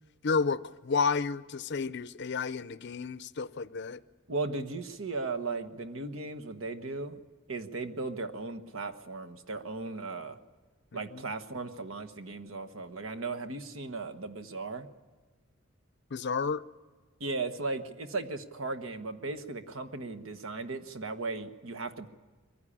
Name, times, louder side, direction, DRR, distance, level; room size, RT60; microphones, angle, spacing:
voice 1, 0.2-4.0 10.9-11.2 16.1-16.6, left 5 dB, 55° left, 0.6 m, -31 dB
voice 2, 4.3-7.2 7.5-10.4 10.9-14.9 17.2-22.1, right 3 dB, 70° right, 1.3 m, -36 dB
22.5 x 15.5 x 10.0 m
head